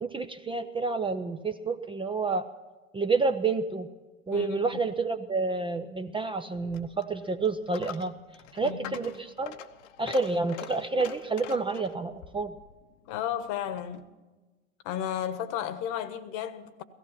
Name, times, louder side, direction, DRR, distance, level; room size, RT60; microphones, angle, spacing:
voice 1, 0.0-2.5 2.9-3.9 4.3-8.1 8.5-9.6 10.0-12.5, right 3 dB, 15° right, 0.5 m, -29 dB
voice 2, 4.3-4.8 8.6-9.0 13.1-14.1 14.8-16.8, left 10 dB, 50° left, 1.2 m, -34 dB
Coin (dropping), 6.5-14.1, left 10 dB, 65° left, 1.0 m, -45 dB
16.5 x 15.0 x 5.7 m
hypercardioid pair, 90°, 40 cm